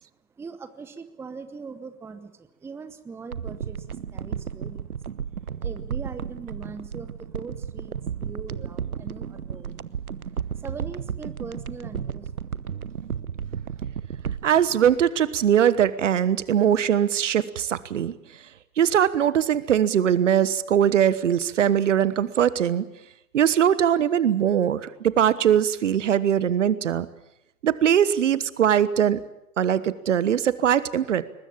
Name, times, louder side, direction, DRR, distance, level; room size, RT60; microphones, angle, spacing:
voice 1, 0.4-4.9 5.6-9.8 10.5-12.5, right 4 dB, 5° right, 11 dB, 0.9 m, -41 dB
sound 1, 3.3-15.8 16.1-16.2, right 7 dB, 75° right, 0.9 m, -33 dB
voice 2, 14.4-18.1 18.8-22.9 23.3-27.1 27.6-29.2 29.6-31.2, right 9 dB, 55° right, 17 dB, 1.3 m, -21 dB
22.5 x 20.0 x 8.7 m, 0.85 s
figure-of-eight pair, 110°, 43 cm